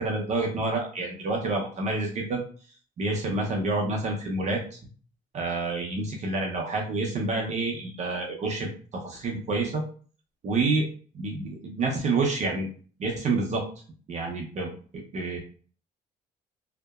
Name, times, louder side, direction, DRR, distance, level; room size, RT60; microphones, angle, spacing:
voice 1, 0.0-2.4 3.0-4.8 5.3-9.8 10.4-10.9 11.1-12.7 13.0-13.7 14.1-15.4, right 3 dB, 45° right, 0 dB, 0.6 m, -28 dB
2.7 x 2.1 x 2.2 m, 0.42 s
cardioid pair, 110°, 17 cm